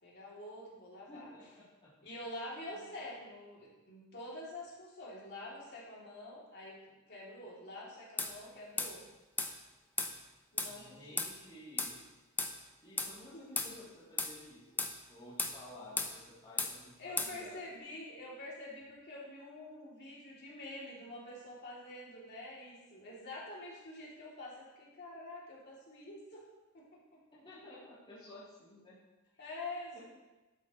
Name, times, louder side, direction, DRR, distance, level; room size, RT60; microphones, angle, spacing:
voice 1, 0.0-1.3 2.0-6.8 7.1-9.0 10.5-11.3 17.0-26.4 26.7-27.2 29.4-30.0, left 1 dB, 50° left, -5 dB, 3.0 m, -47 dB
voice 2, 1.1-1.9 2.7-2.9 10.7-12.0 12.8-17.7 27.3-29.0 29.3-29.5 29.9-30.0, left 1 dB, 25° left, -11 dB, 3.0 m, -53 dB
sound 1, 8.2-8.3 8.8-8.9 9.4-9.5 10.0-10.1 10.6-10.7 11.2-11.3 11.8-11.9 12.4-12.5 13.0-13.1 13.6-13.7 14.2-14.3 14.8-14.9 15.4-15.6 16.0-16.1 16.6-16.7 17.2-17.3, left 3 dB, 10° left, 0.7 m, -34 dB
12.0 x 8.5 x 3.2 m, 1.1 s
head